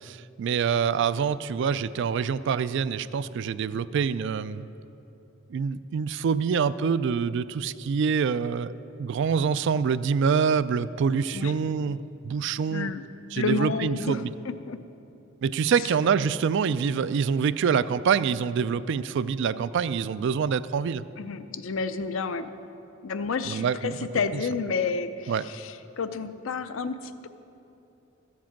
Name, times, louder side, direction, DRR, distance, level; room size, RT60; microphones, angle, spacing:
voice 1, 0.0-4.7 5.5-8.7 9.0-12.0 12.2-12.9 13.3-14.3 15.4-21.0 23.4-24.0 25.3-25.4, right 6 dB, 60° right, 15 dB, 0.3 m, -26 dB
voice 2, 13.4-14.8 15.8-15.9 21.2-22.5 23.0-27.3, left 4 dB, 75° left, 11 dB, 0.5 m, -30 dB
14.0 x 7.4 x 5.9 m, 2.8 s
head